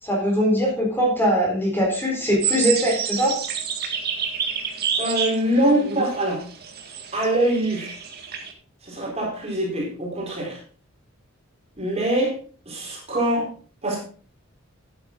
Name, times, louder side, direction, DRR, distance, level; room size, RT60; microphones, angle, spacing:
voice 1, 0.0-3.4, equal, 10° left, -2 dB, 4.1 m, -21 dB
sound 1, 2.4-8.5, right 7 dB, 45° right, 1.9 m, -29 dB
voice 2, 5.0-6.4 7.1-8.0 8.8-10.6 11.8-12.4 12.7-13.5 13.8-14.0, right 1 dB, 30° right, -2 dB, 4.1 m, -23 dB
12.0 x 9.3 x 3.9 m, 0.41 s
head